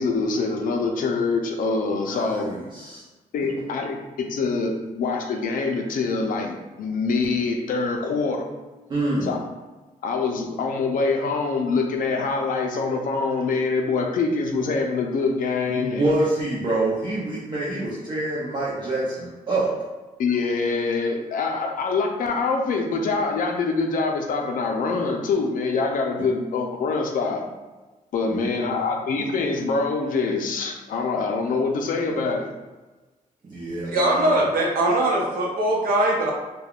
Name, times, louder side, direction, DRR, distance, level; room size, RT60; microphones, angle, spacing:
voice 1, 0.0-2.4 3.3-8.6 9.2-9.4 10.0-16.1 20.2-27.4 28.1-32.5, left 4 dB, 70° left, 3 dB, 0.4 m, -25 dB
voice 2, 2.0-3.0 8.9-9.3 15.7-19.7 26.2-26.3 28.3-28.8 33.4-34.4, right 2 dB, 30° right, -7 dB, 0.5 m, -26 dB
voice 3, 33.9-36.3, right 1 dB, 90° right, -1 dB, 0.7 m, -21 dB
3.4 x 2.2 x 2.3 m, 1.2 s
wide cardioid pair, 150°, 15 cm